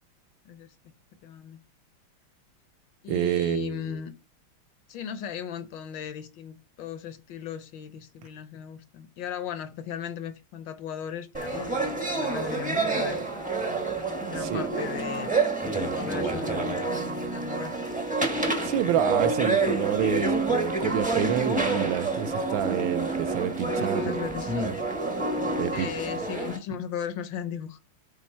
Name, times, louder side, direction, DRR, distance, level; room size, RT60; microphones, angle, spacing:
voice 1, 1.2-1.6 3.0-4.1 4.9-13.4 14.2-15.3 15.6-17.7 23.8-24.7 25.7-27.8, left 8 dB, 70° left, 1.2 m, -37 dB
voice 2, 3.1-4.0 14.4-14.7 18.6-24.1 25.6-25.9, right 9 dB, 75° right, 1.3 m, -28 dB
sound 1, 11.3-26.6, right 3 dB, 10° right, 0.5 m, -28 dB
7.3 x 4.1 x 4.3 m
omnidirectional pair, 2.3 m